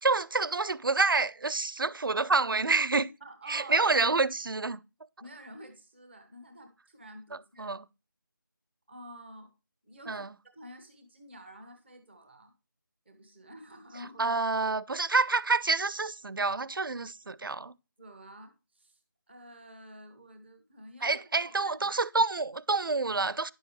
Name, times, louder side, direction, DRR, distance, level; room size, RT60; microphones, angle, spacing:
voice 1, 0.0-3.1 3.5-4.8 7.6-7.8 10.1-10.3 14.2-17.7 21.0-23.5, right 3 dB, 80° right, 0.6 m, -28 dB
voice 2, 3.2-4.0 5.2-7.8 8.9-9.5 9.8-12.5 13.1-14.4 18.0-19.0 19.3-22.0, right 1 dB, ahead, 0.6 m, -49 dB
10.0 x 7.1 x 3.2 m
figure-of-eight pair, 175°, 11 cm